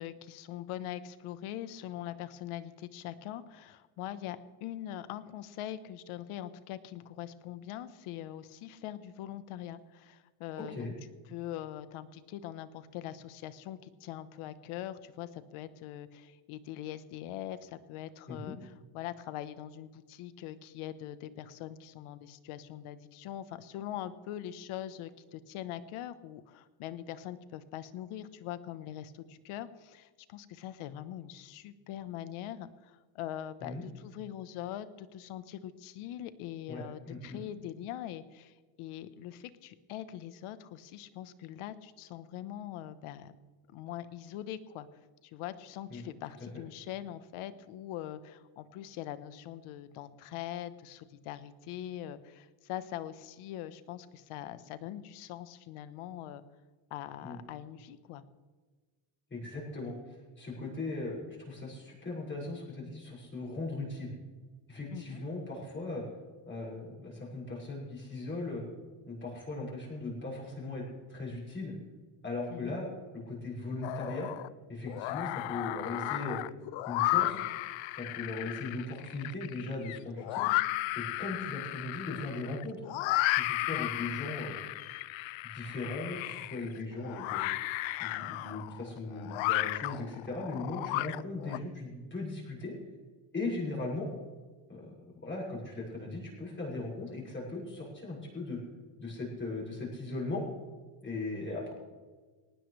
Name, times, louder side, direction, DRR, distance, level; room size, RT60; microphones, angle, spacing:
voice 1, 0.0-10.9 11.3-43.3 43.7-44.9 45.2-56.4 56.9-58.2 64.9-65.2 72.5-72.7 83.7-83.9, left 12 dB, 85° left, 13 dB, 1.2 m, -42 dB
voice 2, 10.6-10.9 18.3-18.5 33.6-33.8 36.7-37.4 45.9-46.0 57.2-57.4 59.3-64.1 64.7-66.0 66.5-68.6 69.0-70.8 71.1-71.7 72.2-72.9 73.1-74.3 74.7-76.4 76.9-77.4 78.0-80.5 80.9-82.8 83.3-84.5 85.5-87.4 88.0-92.7 93.3-94.1 94.7-98.6 99.0-100.4 101.0-101.7, left 2 dB, 25° left, -5 dB, 6.7 m, -38 dB
sound 1, 73.8-74.5 74.9-91.6, left 18 dB, 70° left, 0.6 m, -34 dB
19.0 x 19.0 x 3.3 m, 1.4 s
cardioid pair, 150°, 49 cm